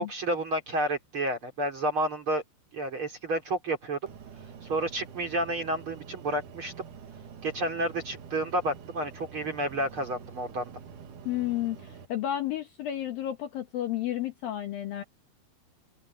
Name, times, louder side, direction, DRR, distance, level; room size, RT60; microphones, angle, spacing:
voice 1, 0.0-2.4 2.7-4.1 4.6-6.7 7.4-10.7, right 1 dB, 35° right, 3.1 m, -30 dB
sound 1, 4.1-12.1, right 6 dB, 55° right, 2.8 m, -47 dB
voice 2, 11.3-15.0, left 12 dB, 70° left, 2.4 m, -32 dB
omnidirectional pair, 5.3 m